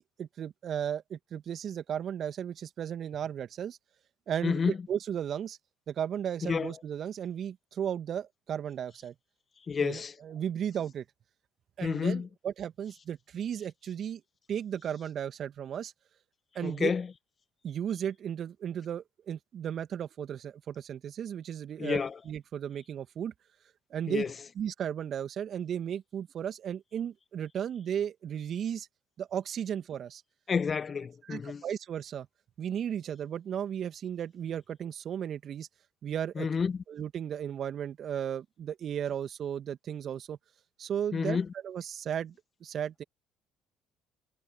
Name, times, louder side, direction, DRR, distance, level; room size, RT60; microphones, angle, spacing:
voice 1, 0.0-3.8 4.3-5.6 5.9-9.1 9.8-11.0 11.8-14.2 14.5-15.9 16.5-16.9 17.6-23.3 23.9-24.3 24.6-28.9 29.2-30.2 31.3-32.3 32.6-35.7 36.0-36.5 36.9-40.4 40.8-41.4 41.6-42.3 42.6-43.0, right 9 dB, 50° right, 2.4 m, -35 dB
voice 2, 4.4-4.8 6.4-6.7 9.7-10.1 11.8-12.3 16.6-17.1 21.8-22.2 24.1-24.3 30.5-31.6 36.4-36.8 41.1-41.5, left 5 dB, 35° left, 1.6 m, -30 dB
hypercardioid pair, 55°, 0 cm